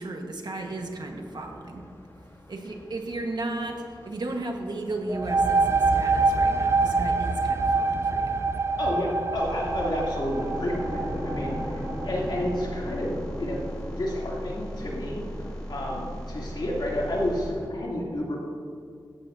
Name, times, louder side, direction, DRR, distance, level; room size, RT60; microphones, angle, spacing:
voice 1, 0.0-1.8 2.5-8.4, right 2 dB, 60° right, 2 dB, 1.4 m, -34 dB
sound 1, 0.6-17.7, equal, 30° left, 1.4 m, -41 dB
sound 2, 5.1-12.5, right 3 dB, 35° right, 0.4 m, -25 dB
voice 2, 8.8-13.1 13.4-13.6 14.0-15.2 15.7-18.4, left 1 dB, 65° left, -4 dB, 2.8 m, -30 dB
sound 3, 9.3-17.5, equal, 10° left, 3.4 m, -38 dB
15.5 x 12.0 x 2.7 m, 2.2 s
wide cardioid pair, 110°, 8 cm